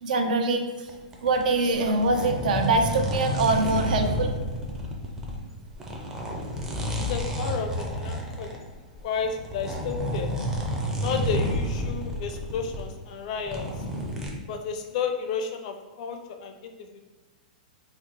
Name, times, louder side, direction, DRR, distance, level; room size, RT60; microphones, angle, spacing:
voice 1, 0.0-0.6 1.2-4.3, right 2 dB, 75° right, 5 dB, 0.5 m, -23 dB
sound 1, 0.9-5.4 5.7-12.8 13.4-14.3, equal, 10° right, 0.5 m, -30 dB
voice 2, 7.1-8.6 9.0-10.4 11.0-13.7 14.5-17.0, left 6 dB, 55° left, 6 dB, 0.4 m, -32 dB
2.8 x 2.1 x 3.9 m, 1.2 s
hypercardioid pair, 135°, 5 cm